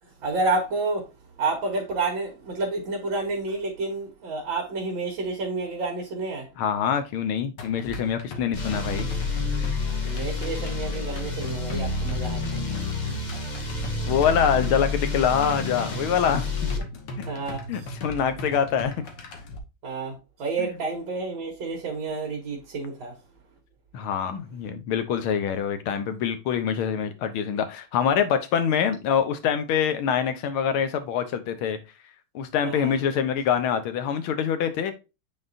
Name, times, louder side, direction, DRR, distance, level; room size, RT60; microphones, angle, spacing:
voice 1, 0.0-6.5 10.0-12.9 17.3-17.9 19.8-23.2 32.6-32.9, right 3 dB, 60° right, 2.1 m, -30 dB
voice 2, 6.6-9.1 9.6-10.2 14.1-16.5 17.7-18.9 20.6-20.7 23.9-31.8 32.3-34.9, left 8 dB, 75° left, 1.7 m, -25 dB
sound 1, 7.6-19.6, left 1 dB, 60° left, 1.7 m, -38 dB
sound 2, 8.5-16.8, left 3 dB, 40° left, 0.6 m, -29 dB
8.7 x 4.2 x 2.5 m
omnidirectional pair, 2.4 m